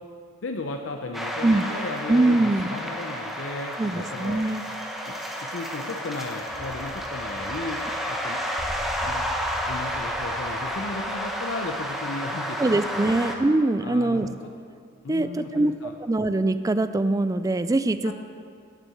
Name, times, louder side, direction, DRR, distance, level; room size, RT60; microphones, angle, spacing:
voice 1, 0.4-4.5 5.0-8.4 9.0-9.3 9.6-12.7 13.1-13.2 13.8-14.3 15.0-15.9 18.0-18.1, left 3 dB, 70° left, 4 dB, 0.6 m, -35 dB
sound 1, 1.1-13.4, equal, ahead, 0.8 m, -31 dB
voice 2, 2.1-2.7 3.8-4.6 12.6-14.3 15.1-15.7 16.0-18.1, right 2 dB, 15° right, 12 dB, 0.3 m, -23 dB
sound 2, 6.2-12.4, left 1 dB, 90° left, 1.6 m, -43 dB
9.4 x 7.6 x 7.7 m, 2.2 s
head